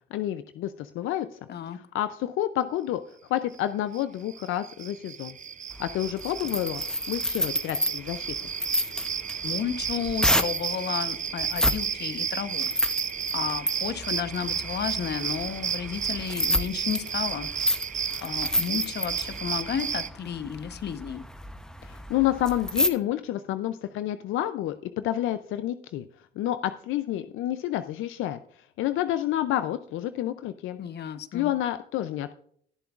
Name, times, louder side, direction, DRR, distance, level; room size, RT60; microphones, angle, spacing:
voice 1, 0.1-1.3 1.7-3.0 3.3-5.4 5.8-8.3 21.8-26.0 26.4-28.4 28.8-30.8 31.3-32.3, left 13 dB, 85° left, 11 dB, 0.5 m, -29 dB
sound 1, 3.9-4.0 4.3-20.1, right 7 dB, 40° right, 0.6 m, -32 dB
sound 2, 5.7-10.7 11.4-11.8 12.1-22.9, equal, 5° left, 0.8 m, -30 dB
voice 2, 9.4-12.7 13.3-17.5 18.2-21.2 30.8-31.5, left 8 dB, 55° left, 11 dB, 0.9 m, -32 dB
19.0 x 7.0 x 2.4 m, 0.63 s
cardioid pair, 90°, 20 cm